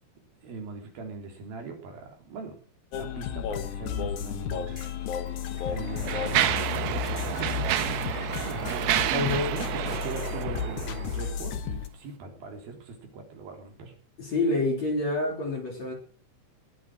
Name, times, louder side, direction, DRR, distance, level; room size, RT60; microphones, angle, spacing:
voice 1, 0.4-2.6 3.0-4.8 5.6-7.9 8.2-13.9, right 4 dB, 55° right, 3 dB, 5.1 m, -40 dB
sound 1, 2.9-11.9, left 8 dB, 75° left, 1.8 m, -33 dB
Mechanisms, 4.7-4.8 5.6-11.3, right 12 dB, 75° right, 2.8 m, -29 dB
voice 2, 9.1-9.5 14.2-15.9, left 2 dB, 40° left, 1 dB, 4.5 m, -27 dB
20.5 x 8.6 x 6.2 m, 0.41 s
omnidirectional pair, 5.2 m